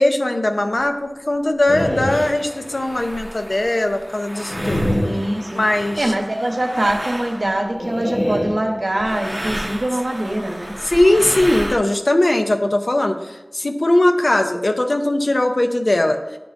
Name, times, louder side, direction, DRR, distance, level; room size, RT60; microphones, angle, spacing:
voice 1, 0.0-4.8 5.5-6.1 10.8-16.2, left 1 dB, 75° left, 5 dB, 0.5 m, -19 dB
sound 1, 0.8-0.9 1.6-1.7 2.0-7.9 9.0-11.8, right 1 dB, 25° right, 0.5 m, -32 dB
sound 2, 1.7-3.0 4.5-6.0 7.7-9.3, equal, 45° left, 1.2 m, -26 dB
voice 2, 5.0-5.6 6.0-10.7, right 1 dB, 85° right, 1 dB, 0.8 m, -23 dB
10.0 x 3.7 x 2.5 m, 1.1 s
wide cardioid pair, 40°, 0 cm